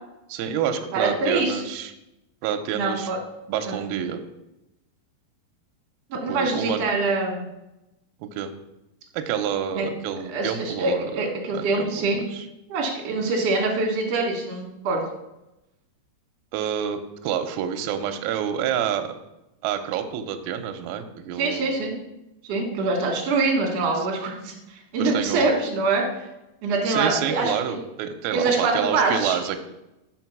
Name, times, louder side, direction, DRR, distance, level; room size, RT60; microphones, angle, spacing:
voice 1, 0.3-1.9 2.4-3.1 3.5-4.2 6.3-6.8 8.2-8.5 9.1-11.1 11.5-12.4 16.5-19.1 19.6-21.8 25.0-25.5 26.9-29.6, right 8 dB, 80° right, 6 dB, 2.3 m, -28 dB
voice 2, 0.9-1.6 2.7-3.2 3.7-3.8 6.1-7.4 9.7-9.9 10.3-12.2 12.7-15.0 21.4-21.9 22.5-26.2 26.6-27.8 28.3-29.4, right 3 dB, 60° right, 0 dB, 1.8 m, -24 dB
6.1 x 4.5 x 5.9 m, 0.92 s
omnidirectional pair, 4.8 m